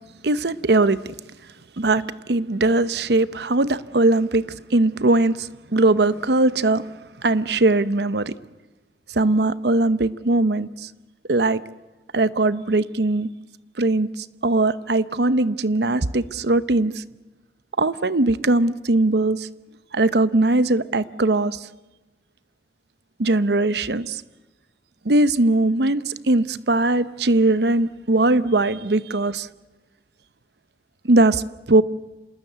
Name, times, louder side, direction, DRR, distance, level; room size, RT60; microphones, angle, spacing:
voice 1, 0.2-1.0 1.8-2.0 2.3-4.4 4.7-6.8 7.2-8.3 9.1-10.9 11.3-11.6 12.1-13.3 13.8-17.0 17.8-19.5 19.9-21.7 23.2-24.2 25.0-29.5 31.0-31.4 31.7-31.8, right 2 dB, 70° right, 15 dB, 0.9 m, -20 dB
27.5 x 19.5 x 8.0 m, 1.1 s
head